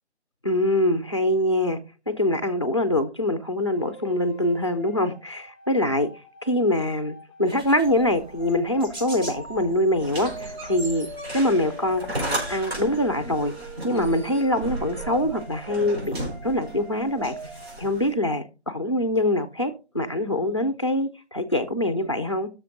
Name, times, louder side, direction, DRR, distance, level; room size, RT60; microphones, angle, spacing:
voice 1, 0.4-6.1 6.4-11.1 11.3-13.5 13.8-17.4 17.8-22.5, left 1 dB, 25° left, 0.5 m, -24 dB
sound 1, 3.7-18.0, right 1 dB, 20° right, 1.0 m, -43 dB
sound 2, 7.4-13.0, right 2 dB, 40° right, 3.0 m, -44 dB
sound 3, 10.0-18.1, right 1 dB, 60° right, 4.7 m, -35 dB
16.5 x 6.5 x 2.5 m
figure-of-eight pair, 165°, 34 cm